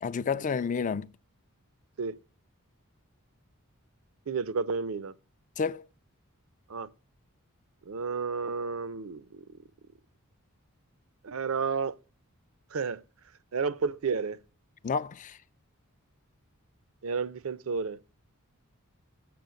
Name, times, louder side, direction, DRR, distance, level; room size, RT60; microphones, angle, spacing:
voice 1, 0.0-1.1 5.6-5.8 14.8-15.4, left 5 dB, 35° left, 0.4 m, -30 dB
voice 2, 4.3-5.1 6.7-6.9 7.9-9.4 11.2-11.9 12.7-13.0 13.5-14.4 17.0-18.0, right 5 dB, 65° right, 0.6 m, -31 dB
7.7 x 7.0 x 6.8 m
head